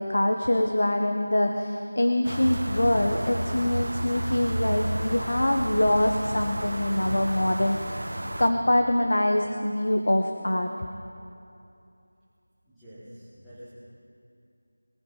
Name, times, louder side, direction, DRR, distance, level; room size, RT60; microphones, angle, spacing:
voice 1, 0.0-8.0 8.4-10.7, left 1 dB, 60° left, 4 dB, 1.3 m, -24 dB
sound 1, 2.2-8.5, right 1 dB, 80° right, 1.7 m, -31 dB
voice 2, 12.7-13.7, equal, ahead, -19 dB, 1.6 m, -47 dB
22.5 x 15.5 x 4.1 m, 2.7 s
figure-of-eight pair, 175°, 0 cm